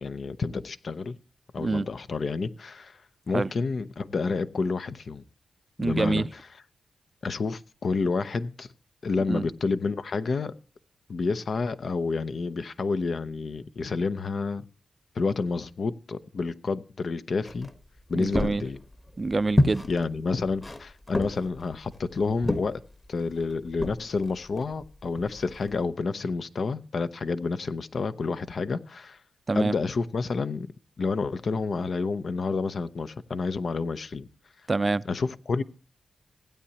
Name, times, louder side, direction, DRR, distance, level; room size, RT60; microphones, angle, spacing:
voice 1, 0.0-1.2 1.5-3.0 3.3-5.2 5.8-6.2 7.2-8.7 9.0-10.5 11.1-14.6 15.1-17.7 18.1-18.8 19.8-22.8 23.1-29.2 29.5-30.7 31.0-34.3 35.1-35.6, left 4 dB, 60° left, 0.6 m, -29 dB
voice 2, 5.8-6.3 9.3-9.5 18.2-18.6 19.2-19.8 29.5-29.7 34.7-35.0, right 3 dB, 40° right, 0.4 m, -26 dB
sound 1, 17.4-25.8, left 1 dB, 25° left, 1.2 m, -31 dB
16.0 x 8.7 x 2.8 m
supercardioid pair, 45°, 0 cm